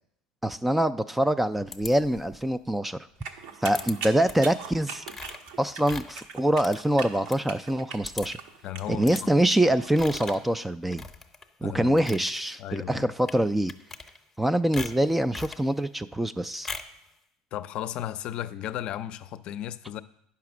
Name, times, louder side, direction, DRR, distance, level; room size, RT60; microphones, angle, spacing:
voice 1, 0.4-3.0 3.6-5.0 5.6-8.4 8.9-11.0 11.6-13.7 14.4-16.7, right 1 dB, 5° right, 13 dB, 0.3 m, -25 dB
sound 1, 1.7-2.4 3.7-3.9 4.3-4.6 5.0-7.4 7.7-7.8 8.0-8.5 9.0-9.2 9.9-10.5 10.9-11.5 11.8-12.3 13.2-13.4 13.7-14.4 14.7-15.7 16.6-17.0, left 4 dB, 15° left, 0.7 m, -40 dB
sound 2, 3.2-10.4, right 5 dB, 75° right, 1.1 m, -40 dB
voice 2, 8.6-9.3 11.6-12.0 12.6-13.1 17.5-20.0, left 12 dB, 50° left, 13 dB, 0.5 m, -35 dB
9.4 x 5.8 x 6.0 m, 0.73 s
supercardioid pair, 115°, 2 cm